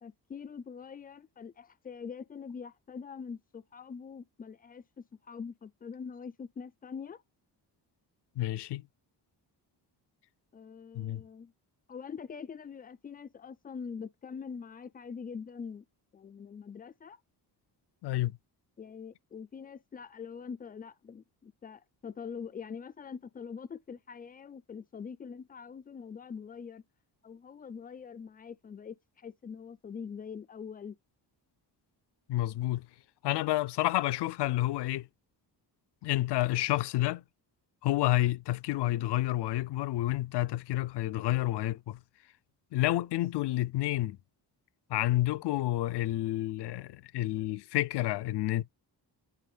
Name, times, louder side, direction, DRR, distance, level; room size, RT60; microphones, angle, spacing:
voice 1, 0.0-7.2 10.5-11.5 11.9-15.8 16.1-17.2 18.8-26.8 27.2-31.0, left 6 dB, 20° left, 0.4 m, -44 dB
voice 2, 8.4-8.8 10.9-11.2 18.0-18.4 32.3-32.9 33.2-35.1 36.0-37.2 37.8-42.0 42.7-44.2 44.9-48.6, left 15 dB, 75° left, 0.6 m, -29 dB
11.5 x 4.6 x 2.3 m
wide cardioid pair, 175°, 41 cm